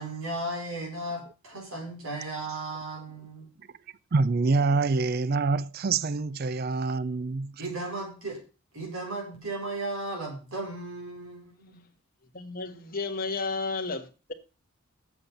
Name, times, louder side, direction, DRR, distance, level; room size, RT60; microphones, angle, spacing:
voice 1, 0.0-3.5 7.6-8.4 8.7-11.8, right 2 dB, 75° right, 4.5 m, -35 dB
voice 2, 4.1-7.6, right 3 dB, 45° right, 0.4 m, -26 dB
voice 3, 12.3-14.3, left 3 dB, 40° left, 1.3 m, -32 dB
7.9 x 7.2 x 6.9 m
head